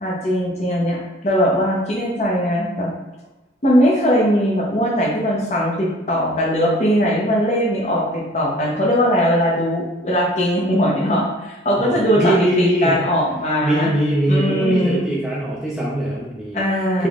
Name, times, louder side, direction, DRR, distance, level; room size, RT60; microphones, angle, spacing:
voice 1, 0.0-2.9 3.6-13.9 14.3-15.0 16.5-17.1, equal, 40° left, -2 dB, 0.6 m, -20 dB
voice 2, 11.8-13.0 13.6-16.6 17.0-17.1, right 1 dB, 5° right, -6 dB, 0.4 m, -21 dB
3.5 x 3.1 x 2.4 m, 1.1 s
head